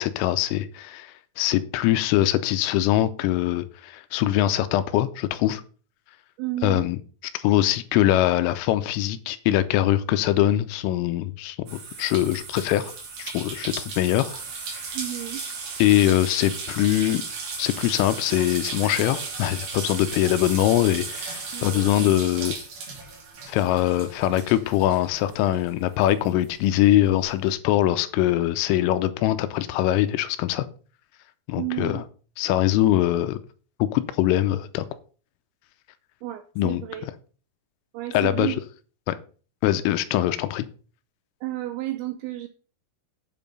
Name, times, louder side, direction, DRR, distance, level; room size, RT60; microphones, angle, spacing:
voice 1, 0.0-5.6 6.6-7.0 7.3-12.9 13.2-14.4 14.7-14.8 15.8-17.2 17.6-22.6 23.5-30.7 31.5-32.0 32.4-33.4 33.8-34.9 36.6-36.8 38.1-38.5 39.1-39.2 39.6-40.7, left 13 dB, 85° left, 12 dB, 3.2 m, -22 dB
voice 2, 6.4-6.9 14.9-15.4 21.5-21.9 31.6-32.0 36.2-37.1 37.9-38.6 41.4-42.5, right 15 dB, 90° right, 9 dB, 2.6 m, -31 dB
sound 1, 11.7-25.7 26.0-27.2, right 4 dB, 50° right, 3.9 m, -35 dB
8.5 x 7.1 x 5.4 m, 0.40 s
omnidirectional pair, 6.0 m